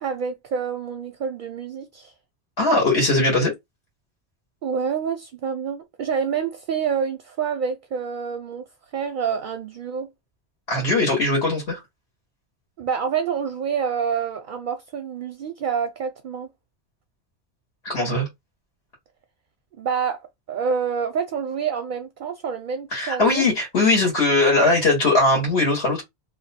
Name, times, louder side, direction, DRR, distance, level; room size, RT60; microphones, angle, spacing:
voice 1, 0.0-2.1 4.6-8.7 8.9-10.1 12.8-16.5 19.7-23.4, right 6 dB, 55° right, 0.6 m, -27 dB
voice 2, 2.6-3.5 10.7-11.8 17.8-18.3 22.9-26.0, left 2 dB, 65° left, 1.6 m, -20 dB
2.8 x 2.3 x 4.1 m
omnidirectional pair, 1.2 m